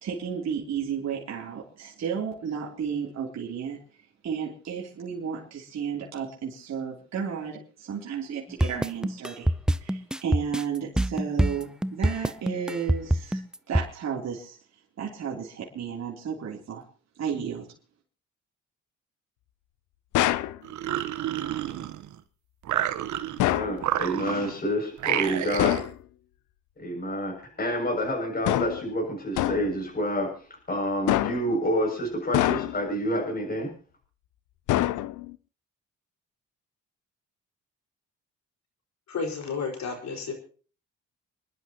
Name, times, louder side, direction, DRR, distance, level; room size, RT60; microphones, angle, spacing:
voice 1, 0.0-3.8 4.2-9.5 9.8-13.4 13.7-14.6 15.0-16.8 17.1-17.7, right 7 dB, 60° right, -2 dB, 3.3 m, -33 dB
sound 1, 8.6-13.9, right 1 dB, ahead, 0.6 m, -24 dB
sound 2, 20.1-20.6 23.4-23.8 25.6-26.0 28.5-28.9 29.4-29.8 31.1-31.6 32.3-32.9 34.7-35.4, left 15 dB, 90° left, 0.7 m, -25 dB
sound 3, 20.6-22.2 22.6-23.5 23.8-24.6 25.0-25.9, right 12 dB, 75° right, 1.1 m, -29 dB
voice 2, 23.4-25.7 26.8-30.3 30.7-33.7, equal, 30° left, 0 dB, 6.8 m, -28 dB
voice 3, 39.1-40.3, left 5 dB, 65° left, 3 dB, 4.9 m, -32 dB
28.5 x 11.0 x 3.0 m, 0.40 s
cardioid pair, 90°, 30 cm